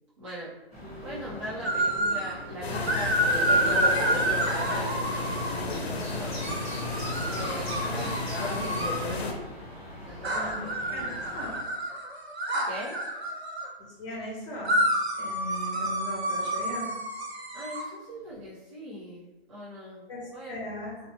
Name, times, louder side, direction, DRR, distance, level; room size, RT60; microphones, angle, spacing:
voice 1, 0.2-0.5 1.0-6.4 7.3-8.2 8.4-9.6 10.1-11.4 12.6-13.0 17.5-20.6, equal, 30° right, -9 dB, 0.4 m, -41 dB
sound 1, 0.7-11.6, equal, ahead, 0.9 m, -43 dB
sound 2, 1.6-2.3 2.9-5.6 6.4-9.0 10.2-13.7 14.6-17.8, right 1 dB, 90° right, 0.8 m, -29 dB
sound 3, 2.6-9.3, left 3 dB, 80° left, 0.6 m, -32 dB
voice 2, 10.3-11.5 13.8-14.8 15.2-16.9 20.1-20.9, left 1 dB, 30° left, -3 dB, 0.9 m, -38 dB
2.7 x 2.0 x 2.8 m, 1.0 s
hypercardioid pair, 155°, 32 cm